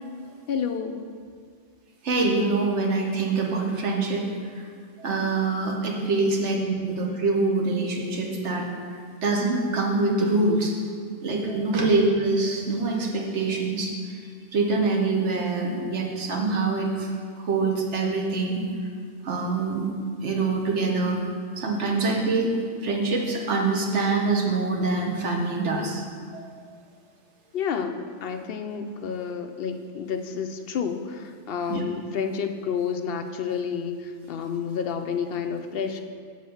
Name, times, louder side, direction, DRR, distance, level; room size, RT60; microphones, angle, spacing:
voice 1, 0.5-1.1 11.8-11.9 27.5-36.0, left 6 dB, 65° left, 7 dB, 0.7 m, -30 dB
voice 2, 2.0-4.2 5.0-8.7 9.2-10.7 11.2-13.9 14.5-17.1 17.4-18.7 19.2-19.9 20.2-21.2 21.6-22.5 22.8-26.0 26.3-26.4 31.7-31.8, right 3 dB, 70° right, 0 dB, 1.4 m, -24 dB
7.6 x 4.3 x 7.0 m, 2.2 s
omnidirectional pair, 1.2 m